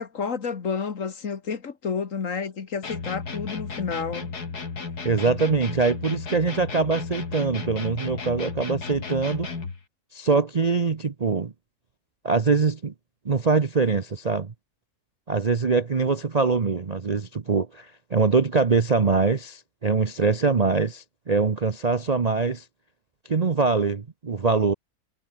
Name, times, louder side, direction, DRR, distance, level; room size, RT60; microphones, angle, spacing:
voice 1, 0.0-4.3, left 5 dB, 50° left, 1.9 m, -30 dB
sound 1, 2.8-9.8, left 4 dB, 70° left, 3.2 m, -34 dB
voice 2, 5.0-9.5 10.1-11.5 12.2-12.9 13.2-14.5 15.3-22.6 23.3-24.7, right 4 dB, 35° right, 0.7 m, -23 dB
omnidirectional pair, 1.8 m